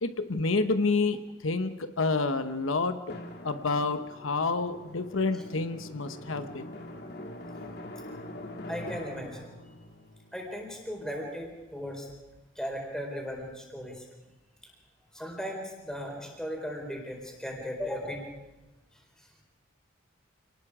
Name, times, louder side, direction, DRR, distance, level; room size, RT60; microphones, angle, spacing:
voice 1, 0.0-1.2 1.4-3.0 3.4-6.7, left 3 dB, 90° left, 9 dB, 1.1 m, -28 dB
Drum, 3.1-11.4, left 1 dB, 50° left, 2.2 m, -44 dB
voice 2, 8.7-9.5 10.3-12.1 12.6-14.0 15.1-18.2, equal, 5° left, 0 dB, 4.3 m, -37 dB
27.5 x 19.0 x 4.9 m, 1.1 s
head